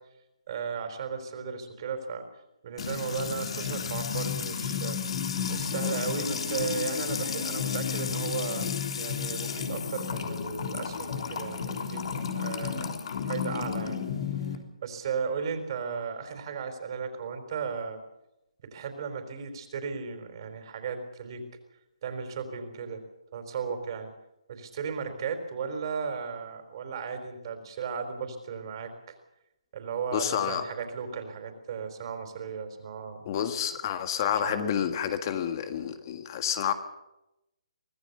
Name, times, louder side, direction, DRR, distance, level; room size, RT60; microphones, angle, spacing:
voice 1, 0.5-2.2 2.6-5.0 5.5-12.1 12.3-12.9 13.2-14.1 14.8-18.0 18.6-21.5 22.0-23.0 23.3-24.1 24.5-28.9 29.7-33.2 34.4-34.8, right 6 dB, 40° right, 7 dB, 4.4 m, -35 dB
Music / Water tap faucet / Trickle dribble, 2.8-14.6, left 7 dB, 55° left, 3.6 m, -32 dB
voice 2, 30.1-30.6 33.2-36.7, left 9 dB, 35° left, 8 dB, 1.8 m, -29 dB
25.0 x 17.5 x 6.9 m, 0.91 s
hypercardioid pair, 150°, 4 cm